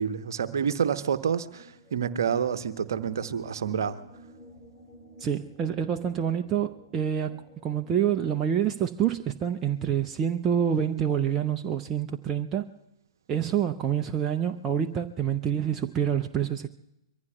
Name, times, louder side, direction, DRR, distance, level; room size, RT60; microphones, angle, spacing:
voice 1, 0.0-4.0, right 7 dB, 55° right, 0.9 m, -28 dB
sound 1, 1.1-8.4, equal, 5° left, 4.5 m, -52 dB
voice 2, 5.2-12.7 13.3-16.7, right 9 dB, 20° right, 0.5 m, -27 dB
25.5 x 23.0 x 2.3 m
figure-of-eight pair, 115°, 2 cm